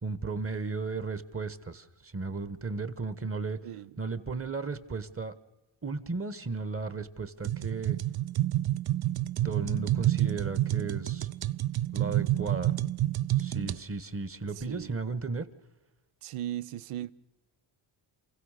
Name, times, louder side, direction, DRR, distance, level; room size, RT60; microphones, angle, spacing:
voice 1, 0.0-3.6 4.0-5.3 5.8-8.0 9.4-11.3 11.9-12.7 13.4-15.5, right 4 dB, 25° right, 1.3 m, -35 dB
voice 2, 3.6-4.0 14.5-15.0 16.2-17.1, right 13 dB, 90° right, 0.8 m, -38 dB
sound 1, 7.4-13.8, right 14 dB, 50° right, 0.6 m, -29 dB
28.0 x 16.0 x 6.6 m
cardioid pair, 100°, 50 cm